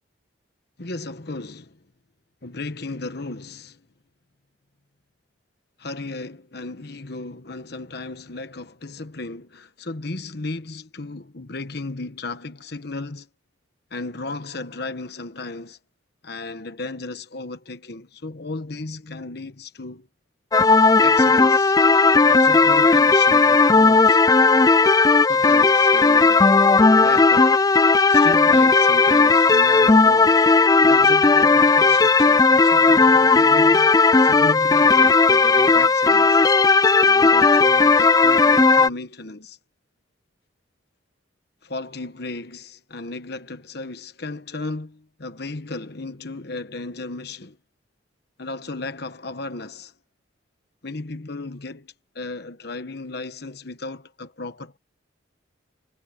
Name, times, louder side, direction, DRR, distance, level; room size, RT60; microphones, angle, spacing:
voice 1, 0.8-1.8 2.4-3.8 5.8-13.3 13.9-15.8 16.2-20.1 21.0-21.8 22.2-24.2 25.3-27.6 28.1-30.4 30.8-36.4 37.0-39.6 41.6-47.6 48.4-49.9 50.8-54.8, left 3 dB, 55° left, 1.2 m, -35 dB
sound 1, 20.5-38.9, left 4 dB, 20° left, 0.4 m, -15 dB
head